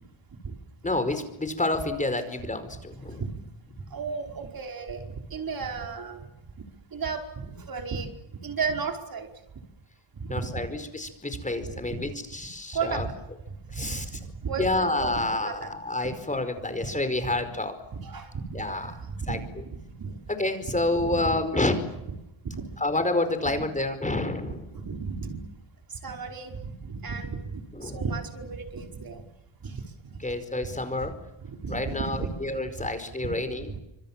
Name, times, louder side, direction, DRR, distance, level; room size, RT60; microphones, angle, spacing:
voice 1, 0.8-3.2 10.3-13.1 13.7-14.1 14.6-17.8 18.5-19.0 19.3-19.4 20.4-21.7 22.8-24.7 27.7-28.0 30.2-31.1 31.7-33.7, left 2 dB, 15° left, 9 dB, 4.9 m, -28 dB
voice 2, 3.0-3.4 3.9-6.5 6.9-8.1 8.4-9.3 10.1-10.5 11.3-12.4 12.7-13.1 13.5-15.7 16.0-16.1 16.6-17.0 17.3-17.5 17.9-20.2 21.0-21.4 22.4-22.8 24.1-24.2 24.7-25.6 25.9-29.2 29.6-30.3 30.6-31.1 31.4-32.3 32.8-32.9 33.2-33.3 33.6-33.8, right 5 dB, 50° right, 4 dB, 5.1 m, -35 dB
27.0 x 26.0 x 7.5 m, 0.94 s
cardioid pair, 90°, 47 cm